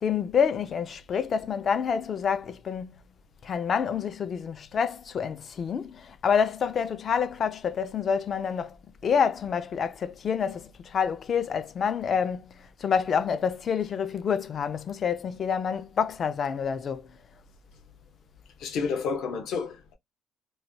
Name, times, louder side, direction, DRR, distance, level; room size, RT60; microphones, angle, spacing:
voice 1, 0.0-2.9 3.4-8.8 9.0-12.5 12.8-17.1, left 7 dB, 30° left, 0.3 m, -27 dB
voice 2, 18.6-19.9, left 5 dB, 60° left, 0.8 m, -30 dB
3.1 x 2.1 x 2.6 m
cardioid pair, 170°, 0 cm